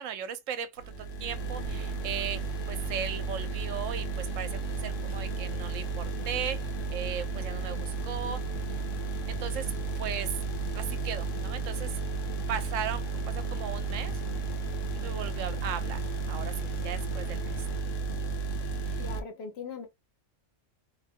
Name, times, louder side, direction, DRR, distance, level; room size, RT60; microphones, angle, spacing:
voice 1, 0.0-6.6 6.9-8.4 9.3-10.3 10.7-12.0 12.5-14.2 14.9-17.8 18.8-19.1, right 8 dB, 80° right, 1.0 m, -37 dB
sound 1, 0.8-19.2, right 4 dB, 80° left, 1.0 m, -33 dB
sound 2, 1.5-17.8, left 4 dB, 40° left, 0.5 m, -50 dB
voice 2, 19.0-19.9, left 5 dB, 60° left, 1.0 m, -40 dB
2.6 x 2.1 x 3.4 m
omnidirectional pair, 1.3 m